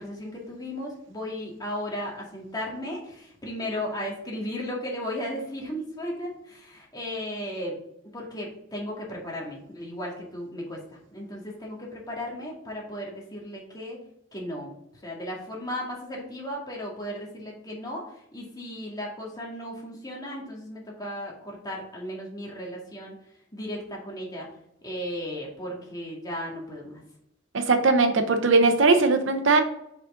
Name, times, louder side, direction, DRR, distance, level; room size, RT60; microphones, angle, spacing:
voice 1, 0.0-7.8 8.1-14.0 14.3-14.7 15.0-23.1 23.5-24.5 24.8-27.0, equal, 20° left, -3 dB, 2.2 m, -35 dB
voice 2, 27.5-29.6, right 3 dB, 75° right, 7 dB, 0.8 m, -20 dB
6.2 x 5.4 x 3.9 m, 0.76 s
head